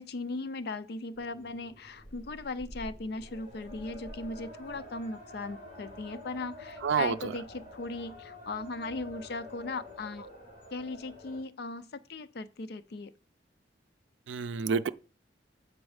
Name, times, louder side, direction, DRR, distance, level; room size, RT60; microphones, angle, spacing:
voice 1, 0.0-10.3 10.7-13.1, left 3 dB, 60° left, 0.5 m, -38 dB
sound 1, 1.1-11.4, left 1 dB, 45° left, 2.7 m, -48 dB
voice 2, 6.8-7.3 14.3-14.9, right 5 dB, 85° right, 0.4 m, -28 dB
8.0 x 4.0 x 4.9 m
head